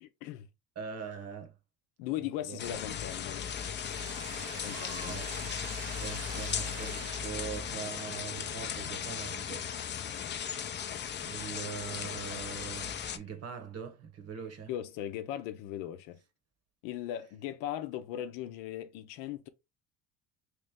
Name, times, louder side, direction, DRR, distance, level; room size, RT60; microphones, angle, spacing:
voice 1, 0.0-0.5 2.0-3.5 4.6-5.5 14.7-16.2 16.8-19.5, left 12 dB, 80° left, 0.7 m, -38 dB
voice 2, 0.8-1.5 2.4-2.8 5.1-5.2 6.0-9.7 10.0-10.2 11.2-14.7, right 7 dB, 45° right, 1.1 m, -42 dB
sound 1, 2.6-13.2, left 8 dB, 30° left, 0.5 m, -37 dB
Mechanisms, 3.4-9.3, right 9 dB, 65° right, 0.7 m, -47 dB
3.1 x 3.0 x 3.5 m
supercardioid pair, 85°, 35 cm